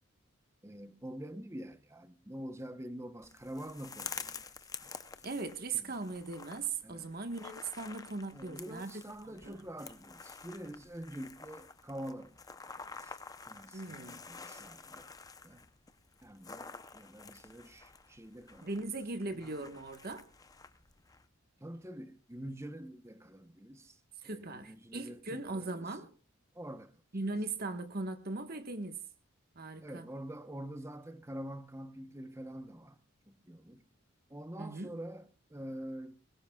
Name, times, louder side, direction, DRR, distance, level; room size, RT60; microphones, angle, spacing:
voice 1, 0.6-4.5 4.8-5.1 5.7-6.1 6.8-7.1 8.3-12.4 12.7-13.2 13.5-15.1 15.4-15.6 16.2-18.7 19.3-19.7 21.6-25.8 26.5-26.9 29.8-33.0 33.3-33.8 34.3-36.1, right 1 dB, 15° right, 0.9 m, -46 dB
sound 1, 3.2-21.3, left 5 dB, 15° left, 0.7 m, -49 dB
voice 2, 5.2-9.6 13.7-14.2 18.6-20.2 24.2-26.1 27.1-29.0 29.5-30.0 34.6-34.9, right 3 dB, 45° right, 1.5 m, -39 dB
23.0 x 20.5 x 2.4 m
head